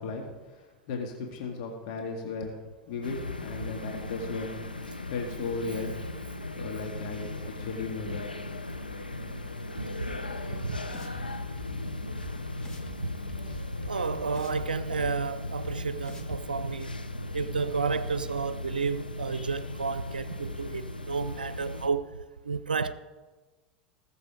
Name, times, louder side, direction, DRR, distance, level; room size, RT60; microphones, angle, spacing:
voice 1, 0.0-2.6 2.9-4.5 5.1-6.0 6.6-8.4, left 4 dB, 55° left, 2.0 m, -36 dB
sound 1, 3.0-21.9, left 2 dB, 90° left, 0.9 m, -37 dB
sound 2, 10.1-10.2 10.7-11.2 11.6-11.7 12.2-12.3 12.6-12.9 13.3-14.7 15.0-15.1 15.6-15.7 16.0-16.4, left 3 dB, 20° left, 1.9 m, -44 dB
voice 2, 13.9-16.9 17.3-22.1 22.5-22.9, right 5 dB, 80° right, 0.6 m, -31 dB
20.5 x 6.9 x 5.1 m
figure-of-eight pair, 80°, 5 cm